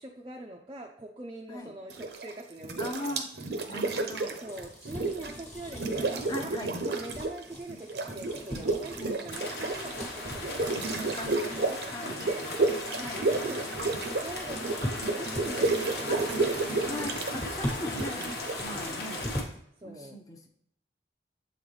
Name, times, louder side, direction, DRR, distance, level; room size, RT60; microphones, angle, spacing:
voice 1, 0.0-3.2 4.4-12.4 12.9-17.0 18.6-18.9 19.8-20.2, right 1 dB, 25° right, -1 dB, 0.4 m, -43 dB
sound 1, 1.9-2.3 2.6-5.4 5.7-7.4 7.7-19.2, right 3 dB, 70° right, 0.7 m, -31 dB
voice 2, 2.8-3.3 3.7-4.4 6.3-6.7 9.0-9.3 11.2-11.3 11.9-12.2 13.0-13.3 16.1-16.2 16.8-18.3 18.6-19.3 19.8-20.5, left 1 dB, 20° left, 4 dB, 0.7 m, -39 dB
sound 2, 4.2-19.6, equal, 40° left, 1.3 m, -42 dB
sound 3, 9.3-19.4, left 2 dB, 65° left, 1.1 m, -37 dB
7.7 x 3.8 x 3.2 m, 0.72 s
head